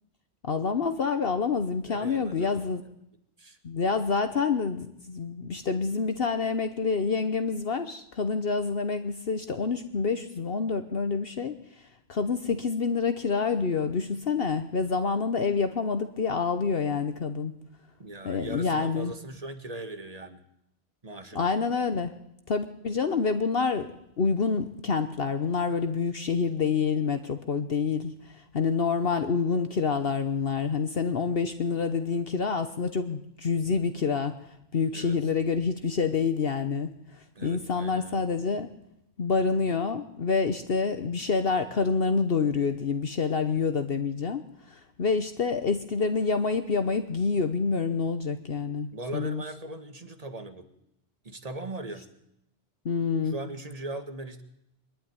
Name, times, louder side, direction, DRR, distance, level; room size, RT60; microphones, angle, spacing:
voice 1, 0.4-2.8 3.6-11.6 12.1-17.5 18.2-19.1 21.3-22.1 22.5-23.9 24.2-34.3 34.7-36.9 37.4-38.7 39.2-49.4 52.8-53.3, left 5 dB, 55° left, 8 dB, 1.2 m, -27 dB
voice 2, 1.8-2.7 3.4-3.6 18.0-20.4 21.0-21.5 34.9-35.2 37.4-38.2 48.9-50.7 51.2-52.1 53.2-54.4, right 2 dB, 35° right, 8 dB, 1.8 m, -39 dB
23.5 x 11.5 x 9.8 m, 0.79 s
omnidirectional pair, 1.2 m